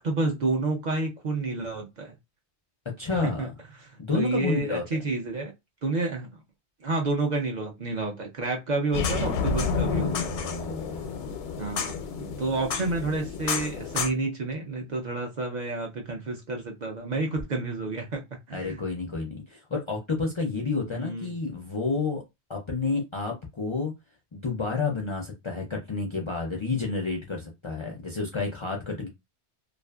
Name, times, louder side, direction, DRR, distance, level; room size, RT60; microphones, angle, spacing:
voice 1, 0.0-2.1 3.2-3.5 3.8-5.5 5.8-6.3 6.8-10.3 11.6-18.2 18.5-18.8 20.9-21.3, right 3 dB, 55° right, 0.5 m, -30 dB
voice 2, 3.0-3.5 4.0-4.8 9.7-11.2 18.5-22.2 22.5-23.9 24.3-29.1, left 4 dB, 50° left, 0.3 m, -30 dB
sound 1, 8.9-14.1, left 5 dB, 85° left, 0.9 m, -30 dB
2.5 x 2.4 x 2.2 m
omnidirectional pair, 1.1 m